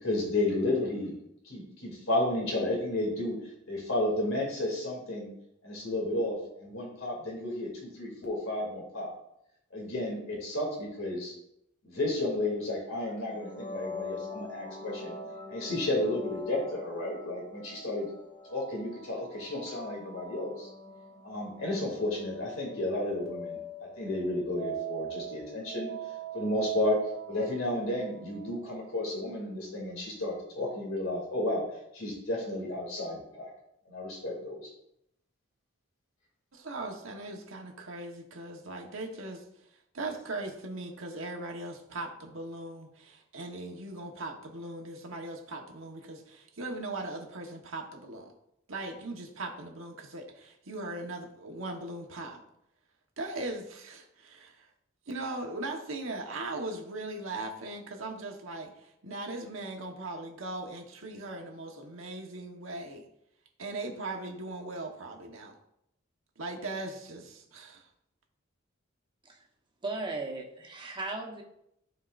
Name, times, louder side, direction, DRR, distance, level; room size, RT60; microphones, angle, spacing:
voice 1, 0.0-1.2 1.5-5.3 5.6-9.1 9.7-11.3 11.8-15.1 15.5-18.1 18.5-20.7 21.2-25.9 26.3-27.0 27.3-31.7 31.9-33.5 33.9-34.7, left 1 dB, 85° left, -2 dB, 2.7 m, -32 dB
sound 1, 13.4-29.0, right 3 dB, 35° left, 2.0 m, -42 dB
voice 2, 36.5-39.4 39.9-48.3 48.7-52.4 53.2-54.7 55.1-63.1 63.6-65.6 66.4-67.9, right 2 dB, 80° right, 2 dB, 1.3 m, -39 dB
voice 3, 69.8-71.4, right 3 dB, 25° right, 0 dB, 1.2 m, -36 dB
13.5 x 4.6 x 2.6 m, 0.78 s
head